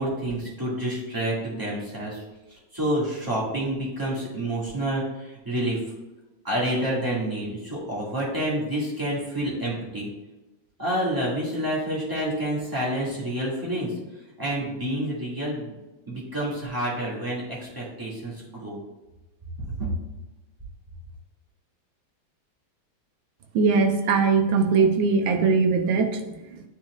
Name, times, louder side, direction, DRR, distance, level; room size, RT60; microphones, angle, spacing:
voice 1, 0.0-2.2 2.7-5.8 6.4-10.1 10.8-13.9 14.4-15.7 16.1-18.8 19.7-19.9, right 1 dB, 10° right, -7 dB, 1.8 m, -28 dB
voice 2, 23.5-26.6, right 4 dB, 75° right, 4 dB, 1.5 m, -21 dB
9.2 x 4.6 x 2.4 m, 1.0 s
omnidirectional pair, 2.2 m